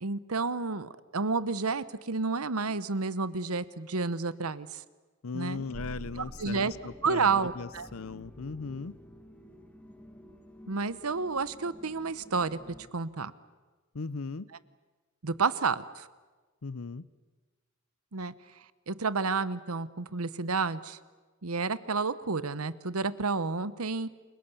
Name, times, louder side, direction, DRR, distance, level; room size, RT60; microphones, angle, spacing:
voice 1, 0.0-4.7 5.3-5.6 6.4-6.7 7.0-7.9 10.7-12.6 12.9-13.3 15.2-16.1 18.1-18.3 18.9-21.0 21.4-24.1, right 4 dB, 90° right, 15 dB, 1.1 m, -30 dB
voice 2, 5.2-8.9 13.9-14.5 16.6-17.1, left 4 dB, 75° left, 17 dB, 0.7 m, -38 dB
sound 1, 5.5-12.9, equal, 5° left, 1.8 m, -52 dB
sound 2, 5.7-8.2, right 2 dB, 55° right, 0.7 m, -47 dB
29.0 x 23.0 x 7.1 m, 1.3 s
head